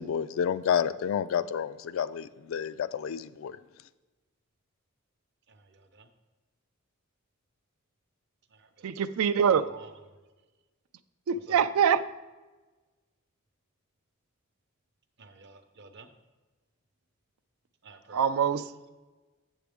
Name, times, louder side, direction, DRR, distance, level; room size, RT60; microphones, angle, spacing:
voice 1, 0.0-3.6, left 8 dB, 65° left, 0.3 m, -30 dB
voice 2, 5.5-6.1 8.5-8.9 9.5-9.9 11.5-11.6 15.2-16.1 17.8-18.2, right 4 dB, 55° right, 0.7 m, -50 dB
voice 3, 8.8-9.6 11.3-12.0 18.1-18.7, right 7 dB, 85° right, 0.4 m, -24 dB
7.6 x 7.3 x 3.5 m
head